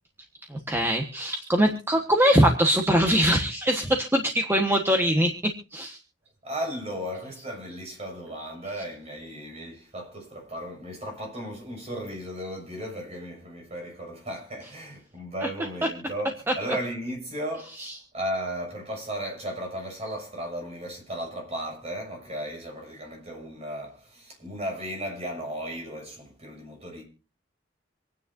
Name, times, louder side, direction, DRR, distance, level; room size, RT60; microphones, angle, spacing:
voice 1, 0.5-6.0 15.4-15.5 16.5-16.6 17.8-18.0, equal, 15° right, 1.3 m, -22 dB
voice 2, 6.4-27.0, equal, 35° right, 6.8 m, -35 dB
26.5 x 9.5 x 2.7 m
head